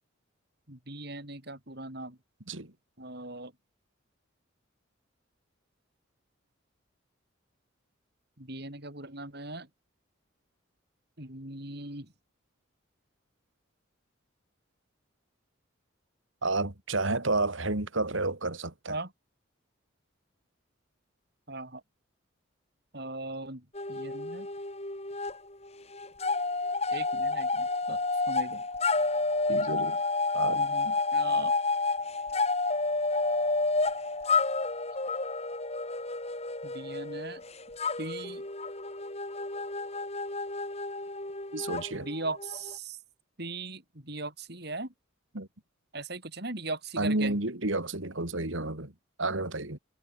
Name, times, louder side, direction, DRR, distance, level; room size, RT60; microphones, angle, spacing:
voice 1, 0.7-2.2 3.0-3.5 8.4-9.7 11.2-12.1 18.9-19.1 21.5-21.8 22.9-24.5 26.9-28.0 28.3-28.6 30.5-31.6 36.6-37.4 38.0-38.4 41.9-43.0 43.4-44.9 45.9-47.4, right 2 dB, 55° right, 5.5 m, -39 dB
voice 2, 16.4-18.9 29.5-30.0 30.3-30.6 41.5-42.1 45.3-45.5 47.0-48.9 49.2-49.8, right 2 dB, 75° right, 3.2 m, -30 dB
sound 1, 23.7-25.4 25.6-42.7, left 3 dB, 30° left, 3.8 m, -30 dB
head